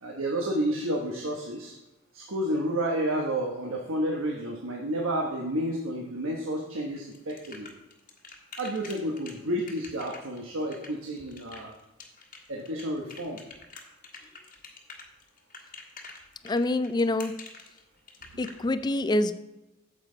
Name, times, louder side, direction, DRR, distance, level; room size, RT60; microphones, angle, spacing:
voice 1, 0.0-1.7 2.1-7.7 8.6-11.7 12.5-13.4 18.3-18.4, right 1 dB, 75° right, 0 dB, 1.2 m, -30 dB
sound 1, 7.0-18.5, left 4 dB, 40° left, 1.4 m, -46 dB
voice 2, 16.4-17.3 18.4-19.3, left 2 dB, 20° left, 12 dB, 0.4 m, -26 dB
9.0 x 7.7 x 3.9 m, 1.0 s
head